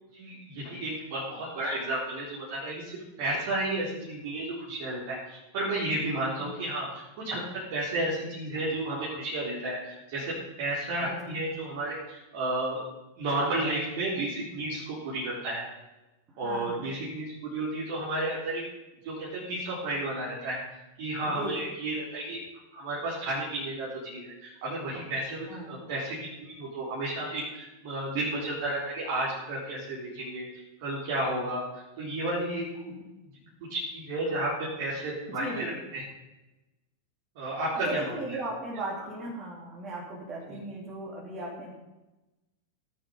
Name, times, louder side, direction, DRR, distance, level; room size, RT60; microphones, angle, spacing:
voice 1, 0.1-12.8 13.2-15.7 16.4-18.6 19.0-20.6 21.0-22.4 22.7-30.5 30.8-32.9 33.7-36.0 37.4-38.4 40.5-40.6, right 1 dB, 50° right, -6 dB, 3.9 m, -32 dB
voice 2, 16.4-16.8 21.2-21.7 25.5-25.7 32.9-33.0 35.3-35.8 37.4-37.6 37.8-41.7, right 2 dB, 30° right, -4 dB, 3.3 m, -37 dB
17.5 x 8.7 x 5.4 m, 1.0 s
figure-of-eight pair, 90°, 0 cm